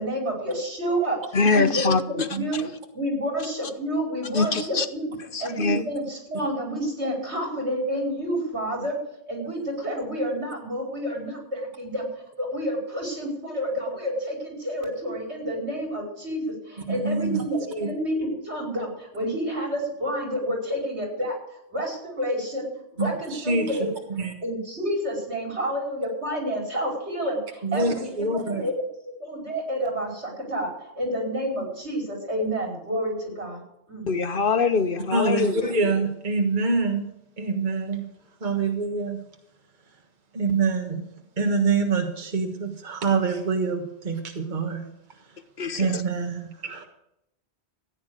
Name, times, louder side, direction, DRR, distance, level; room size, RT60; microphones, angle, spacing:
voice 1, 0.0-1.9 2.4-2.7 2.9-5.1 5.4-9.0 9.3-12.1 12.4-21.4 21.7-23.9 24.4-28.1 28.5-28.7 29.2-33.6 33.9-34.1, equal, 80° right, 1 dB, 5.3 m, -29 dB
voice 2, 1.3-2.3 2.5-2.6 4.3-4.9 5.3-5.8 34.1-35.6 45.6-46.0, left 4 dB, 55° left, 11 dB, 1.1 m, -23 dB
voice 3, 16.9-17.4 17.8-17.9 23.0-23.8 24.1-24.3 27.6-28.6 35.1-37.1 37.4-38.1 38.4-39.2 40.3-41.0 41.4-44.8 45.7-46.9, right 4 dB, 45° right, 4 dB, 1.6 m, -25 dB
15.0 x 9.5 x 6.4 m, 0.83 s
omnidirectional pair, 1.1 m